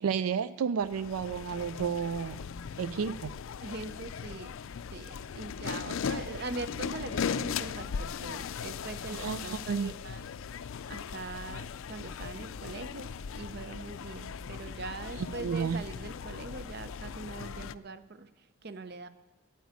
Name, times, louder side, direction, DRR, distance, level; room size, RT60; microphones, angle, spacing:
voice 1, 0.0-2.5 2.8-3.3 6.1-6.4 9.1-9.9 15.2-15.8, right 6 dB, 90° right, 16 dB, 0.4 m, -32 dB
sound 1, 0.8-17.8, left 6 dB, 70° left, 0.4 m, -38 dB
voice 2, 3.6-4.5 4.9-10.2 10.9-18.3 18.6-19.1, right 3 dB, 50° right, 13 dB, 0.6 m, -42 dB
9.3 x 9.2 x 9.4 m, 1.1 s
head